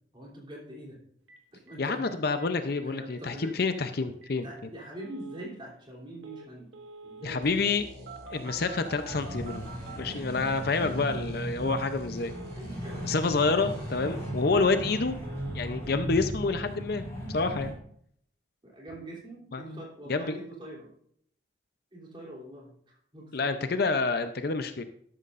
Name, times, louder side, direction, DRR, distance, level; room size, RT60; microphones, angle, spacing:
voice 1, 0.1-1.0 1.5-2.1 2.8-3.6 4.4-6.7 7.0-7.6 10.0-10.4 12.5-13.1 14.5-14.7 18.6-20.9 21.9-23.8, right 1 dB, 25° right, -2 dB, 3.2 m, -44 dB
Telephone, 1.3-1.4 1.7-1.8 2.0-2.1 2.4-2.8 3.1-3.2 3.4-3.8 4.2-4.3 4.8-5.5 6.2-6.5 6.7-7.5 8.1-10.8 11.0-11.4 11.6-12.0 12.2-12.6 12.8-13.2 13.4-13.8 14.0-14.4 14.6-15.6 15.8-16.2 16.4-16.7, right 3 dB, 75° right, 1.6 m, -47 dB
voice 2, 1.8-4.5 7.2-7.9 8.3-9.7 10.0-12.3 13.0-15.2 15.5-17.0 17.3-17.7 19.5-19.7 20.1-20.4 23.3-24.8, left 3 dB, 50° left, 9 dB, 0.6 m, -28 dB
sound 1, 7.4-14.3, equal, 50° right, 3.1 m, -46 dB
sound 2, 9.1-17.7, right 1 dB, 15° left, 4.8 m, -37 dB
12.5 x 12.0 x 2.5 m, 0.66 s
head